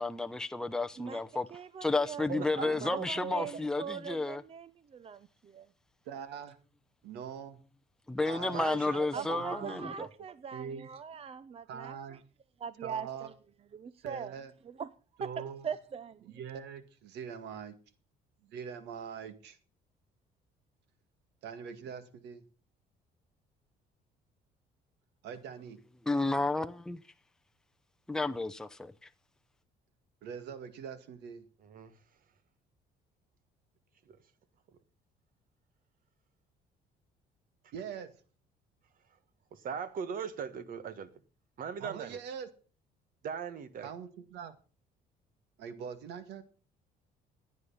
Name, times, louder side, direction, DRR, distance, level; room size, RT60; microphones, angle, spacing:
voice 1, 0.0-1.5 1.8-4.4 8.1-9.9 26.1-27.0 28.1-28.9, left 2 dB, 5° left, 0.7 m, -31 dB
voice 2, 1.5-5.7 9.1-12.2 12.6-13.3 13.7-14.4 14.6-14.9 15.2-16.3, right 7 dB, 35° right, 0.7 m, -42 dB
voice 3, 2.3-3.5 8.5-10.1 31.6-32.0 34.1-34.2 34.7-34.8 39.5-41.1 41.6-42.2 43.2-43.9, right 7 dB, 55° right, 1.7 m, -40 dB
voice 4, 6.1-6.6 7.0-7.6 8.3-8.6 9.3-9.7 10.5-10.9 11.7-12.2 12.8-13.3 14.0-14.5 15.2-15.7 16.2-17.8 18.4-19.6 21.4-22.4 25.2-25.8 30.2-31.4 37.7-38.1 41.8-42.5 43.8-44.6 45.6-46.4, right 7 dB, 80° right, 2.0 m, -43 dB
15.5 x 9.7 x 5.7 m
cardioid pair, 110°, 17 cm